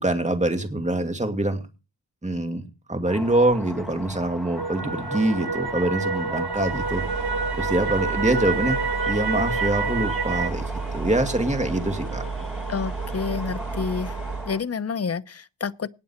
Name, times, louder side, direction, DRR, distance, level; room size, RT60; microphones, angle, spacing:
voice 1, 0.0-1.6 2.2-7.0 7.6-8.8 9.1-10.7 10.9-12.2, right 1 dB, 15° right, 2.4 m, -24 dB
sound 1, 3.1-14.6, left 1 dB, ahead, 2.3 m, -39 dB
sound 2, 4.6-10.5, right 4 dB, 65° right, 1.6 m, -28 dB
sound 3, 6.5-14.6, right 5 dB, 30° right, 3.5 m, -32 dB
voice 2, 12.7-14.2 14.5-15.9, left 5 dB, 35° left, 0.7 m, -29 dB
18.5 x 6.9 x 4.3 m
wide cardioid pair, 75°, 42 cm